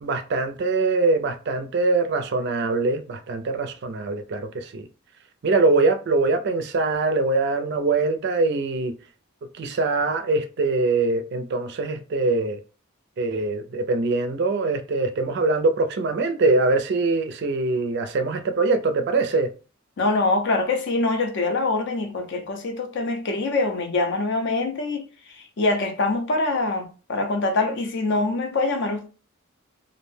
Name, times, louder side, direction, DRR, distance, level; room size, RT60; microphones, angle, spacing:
voice 1, 0.0-4.9 5.4-8.9 9.6-12.6 13.2-19.5, right 3 dB, 50° right, 0.4 m, -23 dB
voice 2, 20.0-29.1, left 2 dB, 55° left, 0.5 m, -24 dB
2.5 x 2.0 x 3.1 m
head